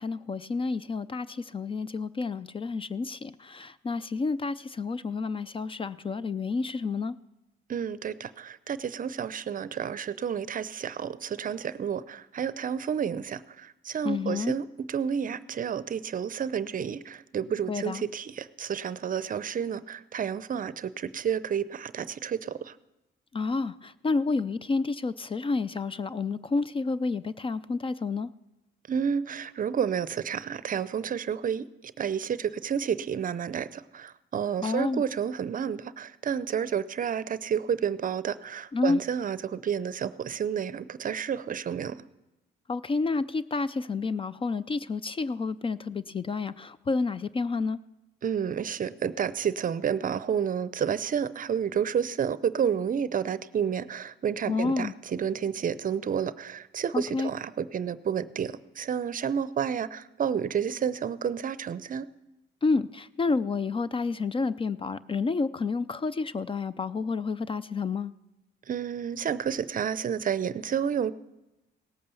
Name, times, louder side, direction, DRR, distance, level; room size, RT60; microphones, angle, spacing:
voice 1, 0.0-7.1 14.0-14.5 17.7-18.0 23.3-28.3 34.6-35.0 38.7-39.0 42.7-47.8 54.5-54.9 56.9-57.3 62.6-68.1, left 4 dB, 25° left, 16 dB, 0.4 m, -29 dB
voice 2, 7.7-22.7 28.9-31.7 32.0-42.0 48.2-62.1 68.7-71.1, right 8 dB, 45° right, 16 dB, 0.6 m, -30 dB
17.5 x 8.6 x 6.9 m, 0.99 s
cardioid pair, 90°, 20 cm